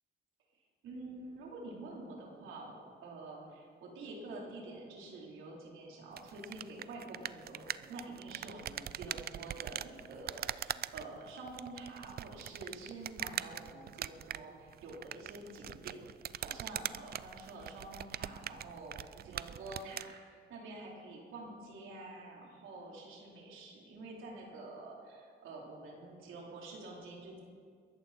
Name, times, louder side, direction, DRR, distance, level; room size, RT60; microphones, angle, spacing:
voice 1, 0.8-2.8 3.0-27.4, right 2 dB, 85° right, -2 dB, 3.8 m, -48 dB
sound 1, 6.1-20.1, right 11 dB, 50° right, 0.4 m, -43 dB
22.0 x 13.5 x 4.3 m, 2.1 s
cardioid pair, 90°, 20 cm